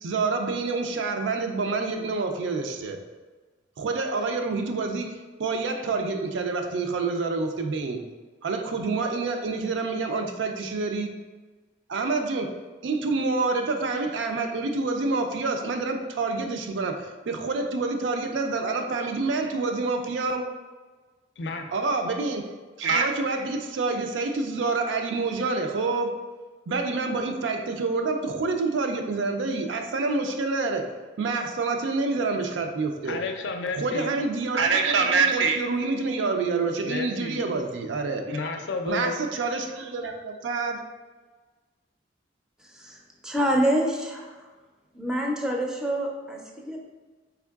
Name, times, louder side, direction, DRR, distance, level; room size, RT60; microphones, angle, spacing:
voice 1, 0.0-3.0 3.8-8.0 8.4-11.1 11.9-12.5 12.8-20.5 21.7-22.5 22.8-26.1 26.7-30.9 31.2-33.2 33.7-38.5 38.9-40.8, right 3 dB, 80° right, 5 dB, 0.4 m, -27 dB
voice 2, 21.4-21.7 33.1-34.1 36.8-37.4 38.3-39.2, left 3 dB, 65° left, 5 dB, 0.4 m, -31 dB
voice 3, 43.2-44.4 44.9-46.8, right 1 dB, 5° right, 0 dB, 0.4 m, -26 dB
4.4 x 3.4 x 2.3 m, 1.3 s
head